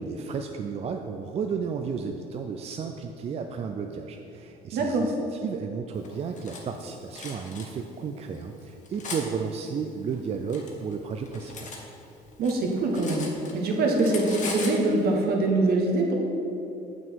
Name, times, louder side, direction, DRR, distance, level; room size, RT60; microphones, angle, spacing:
voice 1, 0.0-11.7, right 6 dB, 40° right, 4 dB, 0.4 m, -33 dB
voice 2, 4.7-5.1 12.4-13.2 13.5-16.1, right 2 dB, 65° right, 1 dB, 1.3 m, -23 dB
Cutlery silverware, 6.0-6.6 7.1-7.7 8.3-9.2 10.1-11.8 12.1-13.7 14.0-14.8, left 4 dB, 45° left, 1.2 m, -38 dB
7.2 x 6.1 x 4.6 m, 2.9 s
cardioid pair, 110°, 17 cm